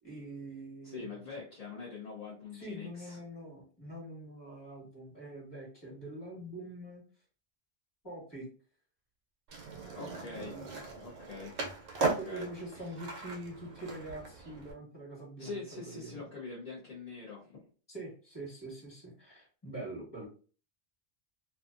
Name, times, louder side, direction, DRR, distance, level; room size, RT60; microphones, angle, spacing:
voice 1, 0.0-1.2 2.5-7.0 8.0-8.5 10.0-10.8 12.0-16.3 17.9-20.3, right 1 dB, 20° left, -4 dB, 1.3 m, -44 dB
voice 2, 0.8-3.2 9.9-10.6 10.8-11.6 12.0-12.5 12.8-12.9 15.4-17.6, left 4 dB, 40° left, -6 dB, 0.6 m, -44 dB
Skateboard, 9.5-14.7, right 4 dB, 75° right, 1.0 m, -38 dB
2.6 x 2.3 x 2.4 m, 0.39 s
omnidirectional pair, 1.3 m